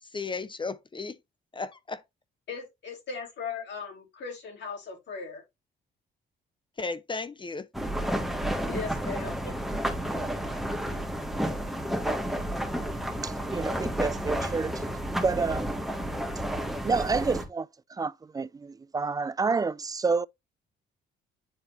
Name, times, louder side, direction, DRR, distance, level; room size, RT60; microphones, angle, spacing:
voice 1, 0.0-1.2 1.5-2.0 6.8-7.7, left 4 dB, 25° left, 0.6 m, -35 dB
voice 2, 2.5-5.4 8.7-9.6, left 5 dB, 65° left, 3.7 m, -38 dB
sound 1, 7.7-17.5, equal, ahead, 1.8 m, -31 dB
voice 3, 13.2-14.7 15.2-15.7 16.8-20.3, right 4 dB, 20° right, 0.3 m, -29 dB
10.0 x 4.1 x 2.6 m
cardioid pair, 90°, 20 cm